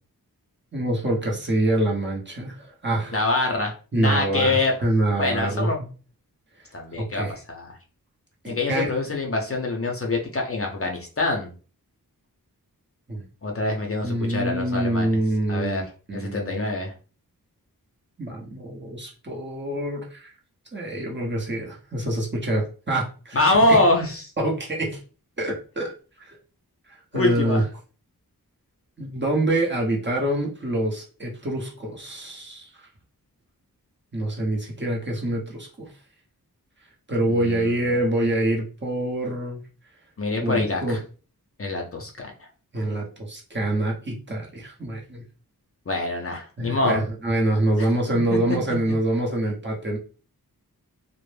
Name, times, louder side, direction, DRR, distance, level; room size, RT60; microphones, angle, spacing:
voice 1, 0.7-3.2 3.9-5.9 7.0-7.4 8.4-9.0 13.1-13.2 14.0-15.8 16.1-16.7 18.2-20.3 20.7-23.4 23.7-23.8 24.4-25.0 25.4-25.9 26.2-26.4 26.9-27.6 29.0-32.9 34.1-35.9 37.1-39.6 40.4-41.0 42.7-45.2 46.6-50.0, right 1 dB, 30° right, -2 dB, 0.7 m, -26 dB
voice 2, 3.1-4.7 5.2-5.8 6.7-7.7 8.5-11.5 13.4-15.2 15.5-15.8 16.1-16.9 23.3-24.2 27.1-27.6 37.3-37.8 40.2-41.0 41.6-42.5 45.9-47.0 47.8-47.9 48.3-48.4, left 2 dB, 40° left, 1 dB, 0.5 m, -24 dB
2.0 x 2.0 x 3.1 m, 0.37 s
wide cardioid pair, 80°, 36 cm